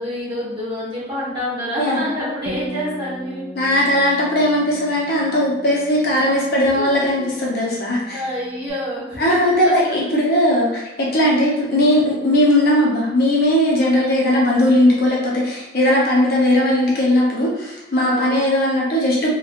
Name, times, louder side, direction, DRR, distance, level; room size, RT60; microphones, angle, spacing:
voice 1, 0.0-3.4 6.7-6.9 7.2-7.3 8.1-10.0 18.0-18.4, equal, 25° right, -10 dB, 1.2 m, -27 dB
Bass guitar, 2.5-8.7, equal, 55° right, 0.4 m, -39 dB
voice 2, 3.5-8.2 9.2-19.3, left 1 dB, 50° left, -5 dB, 0.6 m, -18 dB
2.9 x 2.2 x 2.4 m, 0.94 s
head